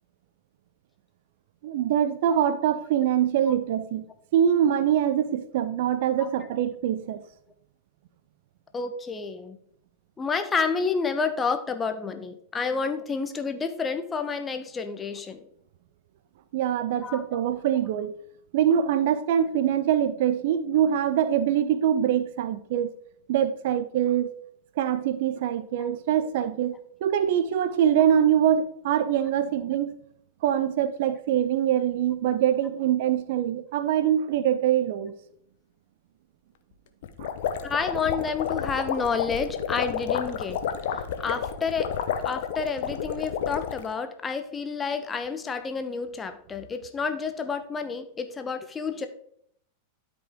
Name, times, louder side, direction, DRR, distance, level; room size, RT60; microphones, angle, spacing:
voice 1, 1.6-4.0 4.3-7.2 16.5-18.1 18.5-22.9 23.3-24.3 24.8-29.9 30.4-35.1 37.2-37.3, right 10 dB, 55° right, 0.6 m, -24 dB
voice 2, 8.7-9.6 10.2-15.4 17.0-17.2 25.8-25.9 37.6-40.6 40.9-41.9 42.2-49.1, left 5 dB, 20° left, 1.0 m, -29 dB
sound 1, 37.0-43.9, left 8 dB, 55° left, 0.9 m, -30 dB
12.5 x 5.3 x 3.6 m
figure-of-eight pair, 90°, 0 cm